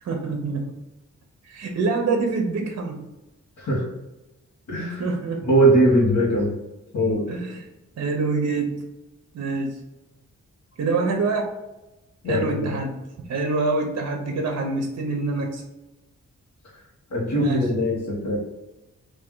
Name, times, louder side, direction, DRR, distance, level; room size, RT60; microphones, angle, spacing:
voice 1, 0.0-0.7 1.5-3.0 5.0-5.4 7.3-7.6 8.0-8.8 9.3-9.8 10.8-11.5 12.3-13.0 13.3-15.6 17.4-17.7, right 3 dB, 60° right, 2 dB, 0.7 m, -25 dB
voice 2, 4.7-5.0 5.4-6.5 6.9-7.2 12.2-12.7 17.1-18.4, right 1 dB, 75° left, -6 dB, 1.3 m, -20 dB
3.4 x 2.6 x 3.8 m, 0.99 s
wide cardioid pair, 105°, 30 cm